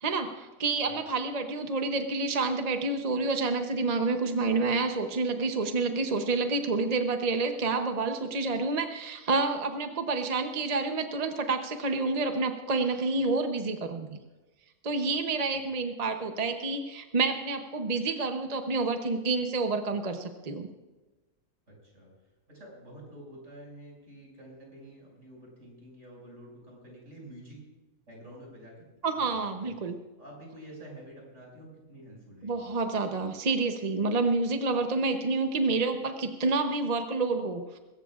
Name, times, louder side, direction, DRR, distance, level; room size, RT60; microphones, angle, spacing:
voice 1, 0.0-14.2 14.8-20.7 29.0-30.0 32.4-37.8, right 3 dB, 35° right, 5 dB, 0.8 m, -28 dB
voice 2, 21.7-22.1 22.5-27.6 28.1-28.8 29.1-29.7 30.2-32.7, right 1 dB, 55° right, -3 dB, 6.3 m, -49 dB
21.0 x 17.5 x 2.4 m, 1.2 s
omnidirectional pair, 1.4 m